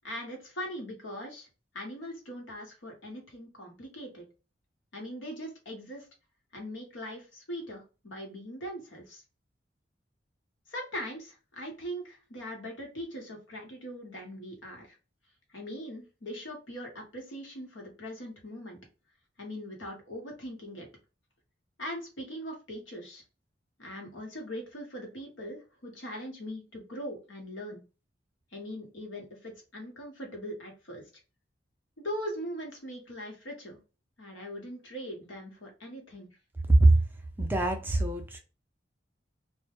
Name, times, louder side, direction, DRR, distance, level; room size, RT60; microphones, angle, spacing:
voice 1, 0.0-1.5 1.7-4.3 4.9-6.1 6.5-9.2 10.7-15.0 15.5-18.8 19.4-20.9 21.8-23.2 23.8-27.8 28.5-31.1 32.0-33.8 34.2-36.3, equal, 90° left, 1.0 m, -40 dB
voice 2, 36.7-37.0 37.4-38.4, right 2 dB, 10° right, 0.3 m, -22 dB
2.1 x 2.1 x 2.9 m
head